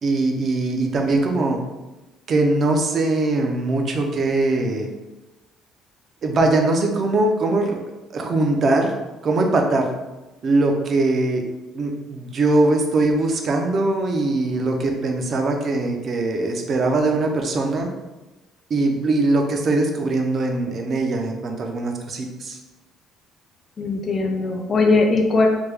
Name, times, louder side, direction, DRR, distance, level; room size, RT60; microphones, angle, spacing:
voice 1, 0.0-1.6 2.3-4.9 6.2-7.8 8.1-8.9 9.2-9.9 10.4-11.4 11.7-17.9 18.7-22.6, right 2 dB, 40° right, 3 dB, 0.5 m, -21 dB
voice 2, 23.8-25.5, left 3 dB, 30° left, 2 dB, 0.4 m, -19 dB
3.4 x 2.2 x 3.2 m, 1.1 s
cardioid pair, 135°, 0 cm